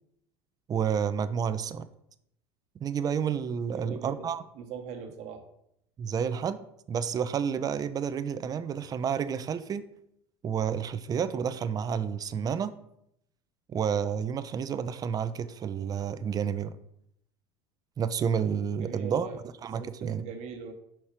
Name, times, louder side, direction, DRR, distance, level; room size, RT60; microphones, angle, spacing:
voice 1, 0.7-1.9 2.8-4.4 6.0-9.9 10.4-12.8 13.7-16.7 18.0-19.3 19.6-20.3, right 7 dB, 30° right, 0.5 m, -30 dB
voice 2, 3.7-4.3 4.5-5.4 18.8-19.4 19.8-20.7, right 6 dB, 55° right, 1.2 m, -40 dB
5.4 x 4.4 x 4.9 m
hypercardioid pair, 85°, 13 cm